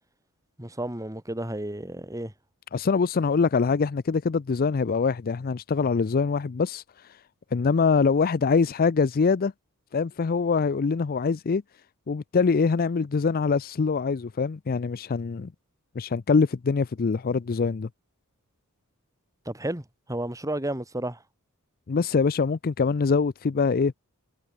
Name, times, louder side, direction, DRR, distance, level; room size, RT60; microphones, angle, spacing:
voice 1, 0.6-2.3 19.4-21.2, right 1 dB, 15° right, 2.7 m, -32 dB
voice 2, 2.7-6.8 7.5-9.5 9.9-11.6 12.1-15.5 16.0-17.9 21.9-23.9, left 5 dB, 40° left, 0.4 m, -24 dB
head